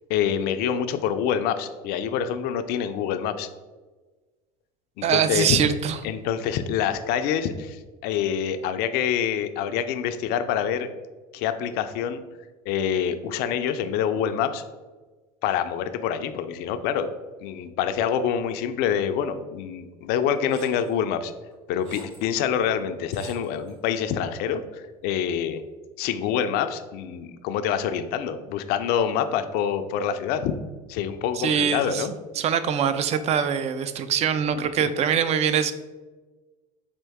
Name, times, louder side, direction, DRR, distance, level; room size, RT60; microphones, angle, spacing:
voice 1, 0.1-3.5 5.0-5.6 6.0-10.9 11.3-12.2 12.7-14.6 15.4-17.1 17.4-21.3 21.7-25.6 26.0-30.6 30.9-32.1 34.8-34.9, left 8 dB, 55° left, 10 dB, 0.4 m, -26 dB
voice 2, 5.0-6.0 31.4-32.1 32.4-35.7, right 7 dB, 35° right, 11 dB, 0.4 m, -23 dB
sound 1, 20.5-20.9 21.5-22.3 22.6-22.7 23.1-23.8, right 1 dB, 65° right, 1.4 m, -47 dB
4.4 x 2.5 x 3.5 m, 1.3 s
hypercardioid pair, 80°, 20 cm